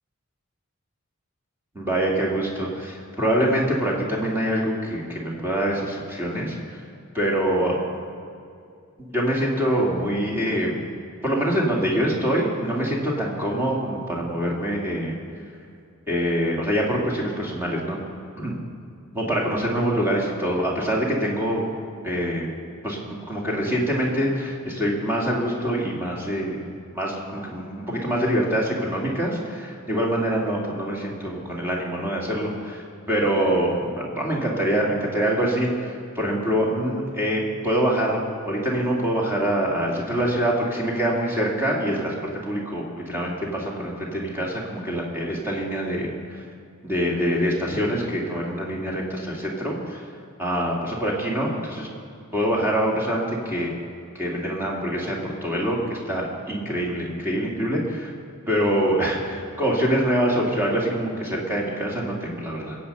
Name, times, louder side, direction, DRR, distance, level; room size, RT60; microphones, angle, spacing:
voice 1, 1.7-6.9 7.1-7.8 9.1-10.8 11.2-15.1 16.1-18.0 18.4-18.6 19.1-21.7 22.0-22.5 22.8-26.6 26.9-38.2 38.4-42.1 42.4-46.4 46.8-50.0 50.4-51.9 52.3-53.7 54.1-58.1 58.5-62.8, right 1 dB, 10° right, -3 dB, 2.5 m, -25 dB
22.0 x 8.5 x 5.6 m, 2.4 s
head